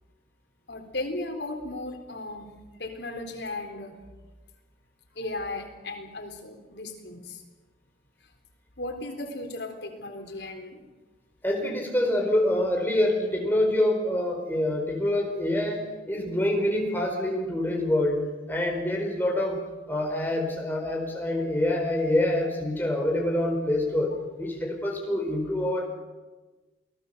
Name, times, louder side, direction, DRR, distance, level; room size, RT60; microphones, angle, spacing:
voice 1, 0.7-2.5 2.8-4.0 5.1-7.4 8.8-10.8, left 2 dB, 75° left, 4 dB, 3.9 m, -36 dB
voice 2, 11.4-19.6 19.9-24.1 24.4-25.8, left 1 dB, 10° left, 1 dB, 4.7 m, -26 dB
28.5 x 19.0 x 6.9 m, 1.3 s
head